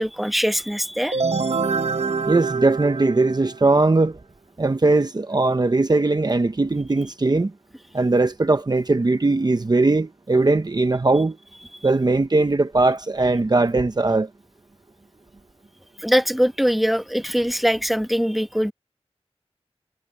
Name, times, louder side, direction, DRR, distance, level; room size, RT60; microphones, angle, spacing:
voice 1, 0.0-1.6 16.0-18.7, equal, ahead, 1.5 m, -22 dB
sound 1, 1.1-3.8, right 4 dB, 70° right, 1.2 m, -25 dB
voice 2, 2.3-4.2 4.6-7.5 7.9-11.4 11.8-14.3, right 3 dB, 40° right, 0.8 m, -19 dB
wide cardioid pair, 75°, 11 cm